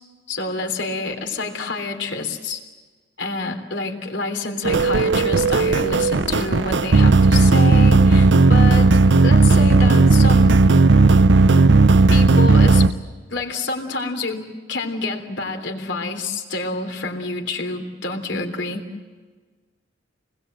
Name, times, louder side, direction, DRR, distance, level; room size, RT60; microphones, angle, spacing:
voice 1, 0.3-2.6 3.2-8.9 9.2-10.6 12.1-12.9 13.3-18.8, left 3 dB, 75° left, 4 dB, 3.5 m, -28 dB
sound 1, 4.6-12.9, right 3 dB, 75° right, 0.7 m, -14 dB
28.0 x 20.5 x 7.8 m, 1.4 s
head